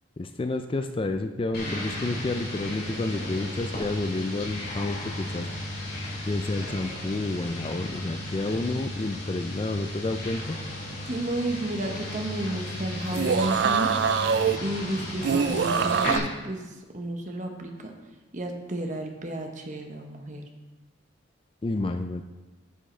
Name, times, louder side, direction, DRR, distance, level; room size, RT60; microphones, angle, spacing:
voice 1, 0.2-5.5 6.3-10.6 21.6-22.3, left 2 dB, 25° left, 7 dB, 0.3 m, -30 dB
sound 1, 1.5-16.2, left 1 dB, 50° left, 2.8 m, -35 dB
voice 2, 11.1-13.9 14.6-17.9 18.3-20.5, right 1 dB, 40° right, 3 dB, 1.0 m, -32 dB
sound 2, 13.0-14.6 15.2-16.2, right 6 dB, 60° right, 0.3 m, -24 dB
8.2 x 7.5 x 4.4 m, 1.2 s
head